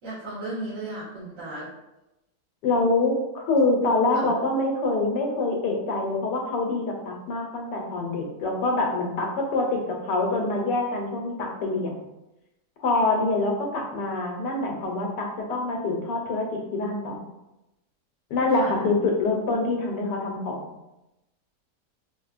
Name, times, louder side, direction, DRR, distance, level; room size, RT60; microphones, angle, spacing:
voice 1, 0.0-1.7 4.1-4.3 18.5-18.7, right 2 dB, 80° right, -14 dB, 2.1 m, -35 dB
voice 2, 2.6-12.0 12.8-17.3 18.3-20.7, left 2 dB, 80° left, 1 dB, 1.3 m, -25 dB
4.7 x 2.1 x 2.4 m, 0.95 s
omnidirectional pair, 1.8 m